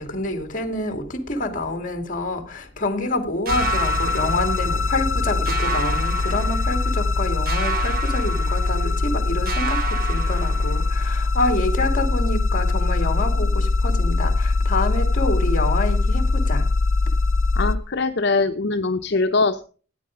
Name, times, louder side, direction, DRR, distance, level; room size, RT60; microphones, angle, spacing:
voice 1, 0.0-16.7, left 2 dB, 45° left, 2.1 m, -27 dB
sound 1, 3.5-17.7, left 3 dB, 90° left, 0.9 m, -22 dB
sound 2, 3.5-5.2 5.5-7.1 7.5-9.2 9.5-11.1, right 6 dB, 50° right, 1.3 m, -31 dB
voice 2, 17.6-19.6, left 3 dB, 60° left, 0.8 m, -22 dB
13.5 x 9.5 x 4.9 m
head